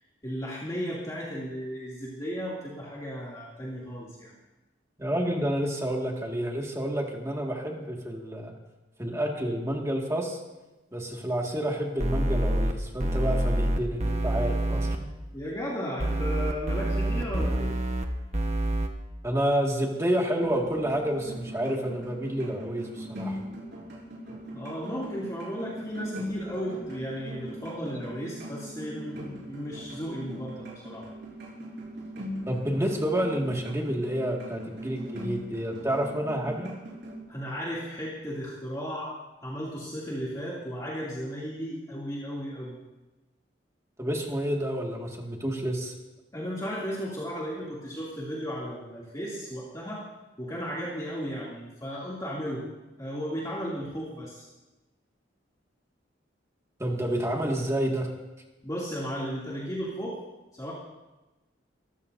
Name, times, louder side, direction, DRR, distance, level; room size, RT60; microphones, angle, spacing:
voice 1, 0.2-4.3 15.3-17.7 24.5-31.0 37.3-42.8 46.3-50.0 50.4-52.6 53.0-54.5 58.6-60.2 60.5-60.7, equal, 20° left, -6 dB, 2.7 m, -35 dB
voice 2, 5.0-8.5 9.0-10.4 10.9-15.1 19.2-23.4 32.5-36.7 44.0-45.9 56.8-58.1, right 1 dB, 15° right, 0 dB, 2.0 m, -29 dB
sound 1, 12.0-12.7 13.0-15.0 16.0-18.1 18.3-18.9, right 1 dB, 40° right, 1.3 m, -26 dB
sound 2, 20.4-37.2, equal, 65° right, 6.5 m, -41 dB
24.5 x 15.0 x 2.7 m, 1.1 s
head